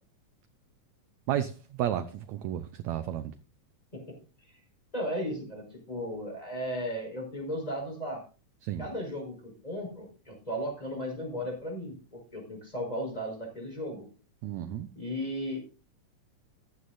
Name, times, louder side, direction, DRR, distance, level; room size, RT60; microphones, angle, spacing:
voice 1, 1.3-3.3 8.6-8.9 14.4-14.9, right 11 dB, 75° right, 1.7 m, -32 dB
voice 2, 4.9-8.2 8.8-14.1 14.9-15.6, equal, 10° left, 5.1 m, -35 dB
15.0 x 11.5 x 2.6 m
omnidirectional pair, 3.9 m